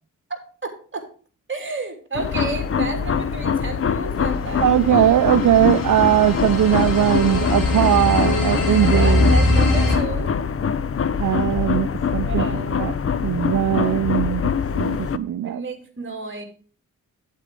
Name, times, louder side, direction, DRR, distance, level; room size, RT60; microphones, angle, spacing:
voice 1, 0.6-1.1 1.5-4.7 8.9-10.3 12.3-12.7 15.4-16.4, right 3 dB, 35° right, 3 dB, 2.8 m, -31 dB
sound 1, 2.1-15.2, left 6 dB, 45° left, 0.6 m, -24 dB
sound 2, 4.5-10.0, left 2 dB, 90° left, 2.4 m, -22 dB
voice 2, 4.6-9.3 11.2-12.9 13.2-15.6, right 11 dB, 70° right, 12 dB, 0.5 m, -20 dB
9.3 x 8.2 x 3.7 m, 0.41 s
wide cardioid pair, 110°, 32 cm